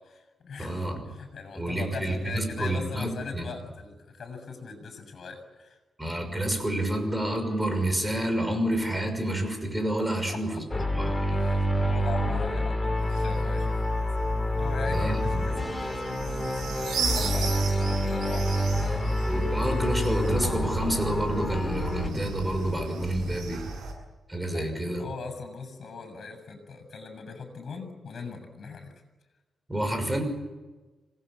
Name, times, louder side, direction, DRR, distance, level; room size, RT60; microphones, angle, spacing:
voice 1, 0.0-5.8 10.1-10.9 11.3-14.1 14.5-19.0 24.5-28.9, left 4 dB, 55° left, 9 dB, 7.3 m, -40 dB
voice 2, 0.6-1.0 1.5-3.5 6.0-10.6 10.9-11.3 14.8-15.4 19.2-23.6 24.3-25.0 29.7-30.2, right 1 dB, 10° right, 6 dB, 6.1 m, -29 dB
sound 1, 10.7-22.1, left 1 dB, 15° left, 3.3 m, -27 dB
sound 2, 13.0-23.9, right 5 dB, 85° right, 7.9 m, -36 dB
26.5 x 19.5 x 8.5 m, 1.2 s
wide cardioid pair, 125°, 0 cm